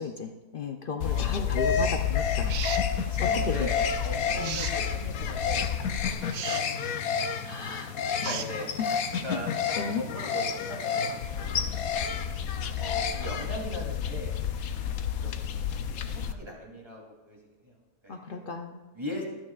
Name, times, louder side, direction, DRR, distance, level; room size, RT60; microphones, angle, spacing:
voice 1, 0.0-2.5 3.2-3.7 4.4-4.6 7.4-7.9 8.3-8.4 8.8-8.9 9.3-9.4 9.8-10.0 18.1-18.8, left 5 dB, 90° left, 5 dB, 0.4 m, -34 dB
sound 1, 1.0-16.3, left 7 dB, 60° left, 1.1 m, -29 dB
voice 2, 1.0-1.7 3.0-5.7 6.1-6.7 8.2-8.7 9.2-9.6 9.9-11.7 12.8-14.4 15.2-15.5 16.3-17.4 17.6-17.8 18.0-18.5 18.9-19.2, equal, 15° right, -3 dB, 3.1 m, -39 dB
sound 2, 2.5-2.9 4.4-4.8 6.3-6.6 8.2-8.5, right 8 dB, 60° right, 0.9 m, -35 dB
24.5 x 9.1 x 2.4 m, 1.2 s
omnidirectional pair, 1.9 m